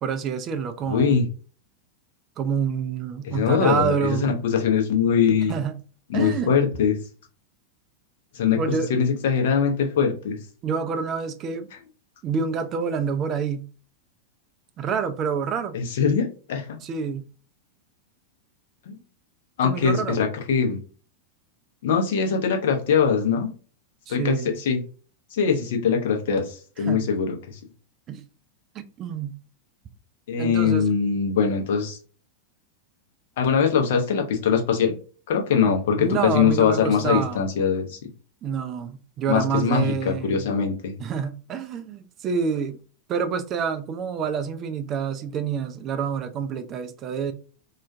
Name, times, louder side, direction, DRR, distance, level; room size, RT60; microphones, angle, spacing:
voice 1, 0.0-1.2 2.4-4.4 5.5-5.7 6.1-6.5 8.6-8.9 10.6-11.7 12.2-13.7 14.8-15.8 16.8-17.2 19.6-20.2 24.1-24.5 26.9-27.0 28.1-28.2 28.7-29.4 30.4-30.9 36.0-37.4 38.4-40.5 41.0-42.8 43.1-47.3, right 6 dB, 30° right, 0.3 m, -27 dB
voice 2, 0.9-1.2 3.2-5.5 6.1-7.0 8.3-8.6 8.9-10.4 15.7-16.8 19.6-20.8 21.8-23.5 24.1-24.8 25.3-27.6 30.3-32.0 33.4-34.9 35.3-38.0 39.3-41.0, left 6 dB, 55° left, 0.6 m, -22 dB
2.3 x 2.1 x 2.5 m
figure-of-eight pair, 90°, 0 cm